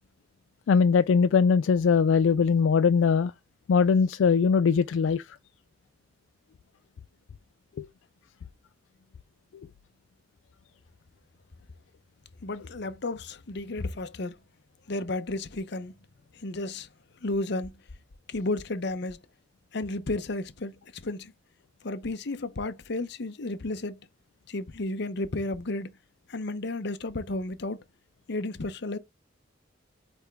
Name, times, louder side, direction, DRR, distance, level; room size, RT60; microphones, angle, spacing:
voice 1, 0.7-3.3 3.7-5.2 7.8-7.9, left 5 dB, 80° left, 0.3 m, -21 dB
voice 2, 12.4-14.4 14.9-15.9 16.3-16.9 17.2-17.7 18.3-19.2 19.7-21.3 21.8-24.0 24.5-25.9 26.3-27.8 28.3-29.0, left 2 dB, 60° left, 0.7 m, -32 dB
8.4 x 3.5 x 3.4 m
head